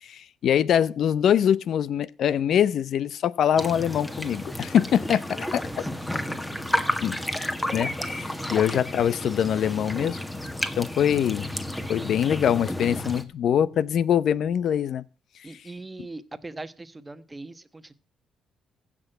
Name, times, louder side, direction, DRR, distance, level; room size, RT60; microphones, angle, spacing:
voice 1, 0.0-5.7 7.0-7.2 7.7-10.2 10.8-11.5 11.9-15.0, left 9 dB, 70° left, 0.7 m, -23 dB
sound 1, 3.6-13.2, left 1 dB, 10° left, 1.7 m, -31 dB
voice 2, 5.6-7.2 8.3-8.6 15.4-17.9, right 2 dB, 20° right, 1.2 m, -42 dB
15.5 x 6.2 x 7.9 m
cardioid pair, 90°, 0 cm